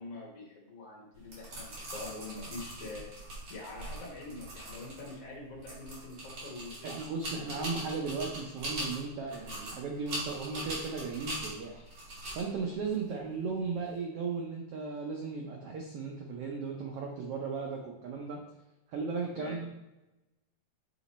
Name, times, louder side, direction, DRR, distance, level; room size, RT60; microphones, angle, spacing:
voice 1, 0.0-7.1 19.3-19.5, left 2 dB, 55° left, -2 dB, 2.1 m, -45 dB
sound 1, 1.1-13.9, right 1 dB, 60° right, 3.4 m, -42 dB
voice 2, 6.8-11.9 12.3-18.4 18.9-19.7, right 4 dB, 85° right, 1 dB, 1.3 m, -36 dB
8.2 x 3.0 x 4.1 m, 1.0 s
omnidirectional pair, 3.6 m